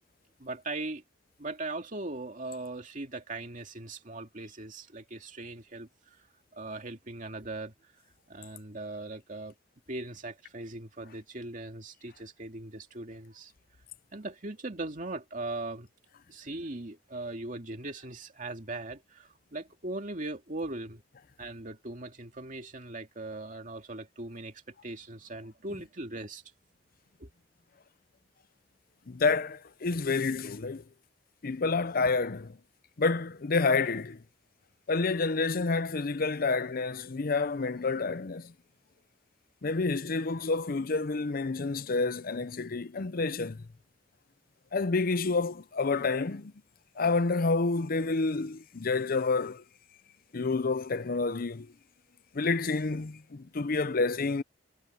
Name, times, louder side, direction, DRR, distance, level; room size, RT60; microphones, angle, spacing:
voice 1, 0.4-1.0 1.4-6.2 6.5-7.9 8.3-9.5 9.9-13.5 14.1-15.9 16.3-21.0 21.4-26.4 27.2-27.3, right 2 dB, 45° right, 2.5 m, -39 dB
voice 2, 29.1-30.8 31.4-32.6 33.0-34.2 34.9-38.5 39.6-43.6 44.7-46.5 47.0-49.6 50.3-51.7 52.3-54.4, left 3 dB, 55° left, 0.7 m, -29 dB
head